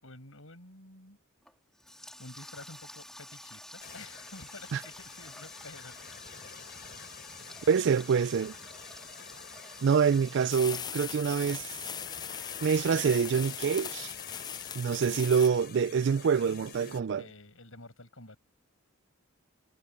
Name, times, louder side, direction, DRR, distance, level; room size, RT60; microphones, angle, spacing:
voice 1, 0.0-1.2 1.9-6.0 16.5-18.4, left 2 dB, 65° left, 7.3 m, -50 dB
Water tap faucet, 1.4-11.6, left 1 dB, ahead, 2.0 m, -49 dB
sound 1, 3.8-17.0, left 7 dB, 45° left, 4.5 m, -49 dB
voice 2, 7.7-8.5 9.8-11.8 12.6-14.1 14.7-17.2, right 6 dB, 55° right, 0.3 m, -26 dB
sound 2, 10.5-15.5, left 7 dB, 20° left, 0.4 m, -39 dB
head